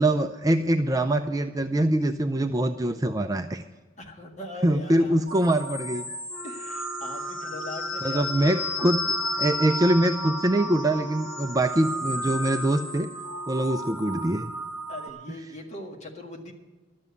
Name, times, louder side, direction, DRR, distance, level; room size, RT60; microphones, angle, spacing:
voice 1, 0.0-3.6 4.6-6.0 8.0-13.1 13.5-14.5 15.3-15.4, right 1 dB, 15° right, 7 dB, 0.4 m, -24 dB
voice 2, 4.0-5.2 6.4-8.5 14.9-16.5, left 1 dB, 35° left, 0 dB, 1.8 m, -40 dB
sound 1, 5.3-15.1, equal, 65° left, 1.3 m, -33 dB
Wind instrument woodwind instrument, 6.3-14.2, left 1 dB, 10° left, 2.2 m, -45 dB
12.0 x 7.5 x 8.2 m, 1.3 s
head